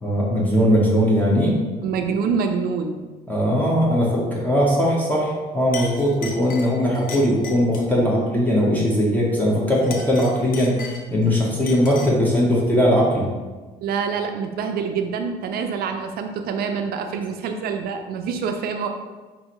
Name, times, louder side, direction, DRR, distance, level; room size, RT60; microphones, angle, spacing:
voice 1, 0.0-1.6 3.3-13.3, equal, 10° left, -5 dB, 0.8 m, -20 dB
voice 2, 1.8-3.0 13.8-18.9, right 6 dB, 65° right, 5 dB, 0.4 m, -26 dB
Chink clink, 5.2-5.4 5.7-8.0 9.7-11.3 11.7-12.3, left 4 dB, 60° left, 0.6 m, -37 dB
5.4 x 2.6 x 2.9 m, 1.3 s
cardioid pair, 110°, 17 cm